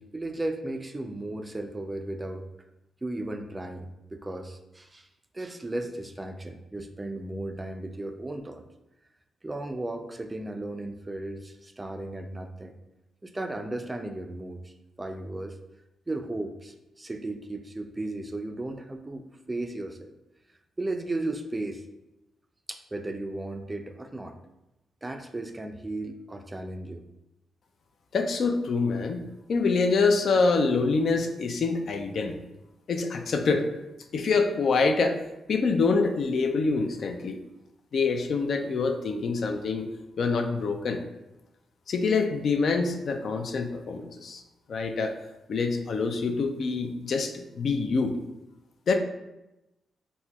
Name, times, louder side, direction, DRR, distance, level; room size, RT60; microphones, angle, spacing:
voice 1, 0.0-2.5 3.0-5.1 5.3-8.6 9.4-12.7 13.2-14.7 15.0-15.6 16.1-20.1 20.8-21.8 22.7-24.4 25.0-27.0, right 2 dB, 20° right, 5 dB, 0.3 m, -35 dB
voice 2, 28.1-32.4 32.9-33.7 34.1-35.2 35.5-37.4 37.9-39.9 40.2-41.0 41.9-44.4 44.7-45.1 45.5-48.2 48.9-49.0, left 4 dB, 65° left, 5 dB, 0.3 m, -25 dB
4.1 x 2.1 x 2.2 m, 0.94 s
cardioid pair, 70°, 0 cm